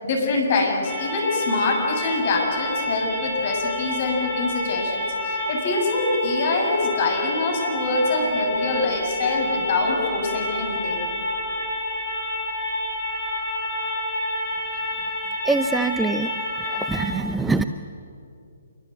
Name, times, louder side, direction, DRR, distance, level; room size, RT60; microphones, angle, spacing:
voice 1, 0.0-11.1, left 3 dB, 45° left, 1 dB, 7.7 m, -24 dB
sound 1, 0.8-17.0, left 1 dB, 15° left, 7.7 m, -28 dB
voice 2, 15.5-16.3 16.9-17.6, right 3 dB, 5° right, 10 dB, 0.7 m, -23 dB
27.0 x 23.0 x 8.3 m, 2.6 s
figure-of-eight pair, 130°, 0 cm